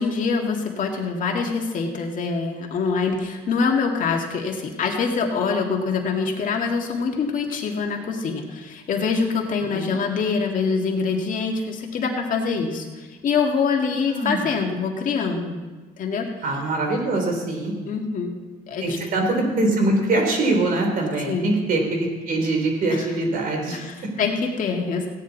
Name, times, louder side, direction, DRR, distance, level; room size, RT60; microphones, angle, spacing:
voice 1, 0.0-15.6 16.0-16.3 17.8-18.3 18.7-19.0 21.2-21.5 22.9-23.1 23.7-25.1, left 5 dB, 50° left, 1 dB, 2.1 m, -25 dB
voice 2, 14.0-14.5 16.4-17.7 18.8-23.8, right 2 dB, 55° right, 2 dB, 3.4 m, -23 dB
16.5 x 9.7 x 4.1 m, 1.3 s
cardioid pair, 110°, 17 cm